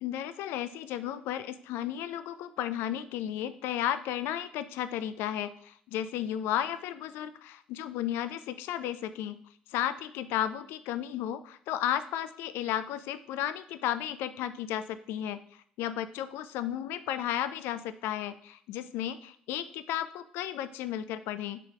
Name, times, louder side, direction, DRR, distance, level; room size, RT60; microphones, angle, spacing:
voice 1, 0.0-9.4 9.7-21.6, left 11 dB, 65° left, 13 dB, 0.4 m, -34 dB
5.8 x 4.0 x 4.4 m, 0.62 s
figure-of-eight pair, 50°, 4 cm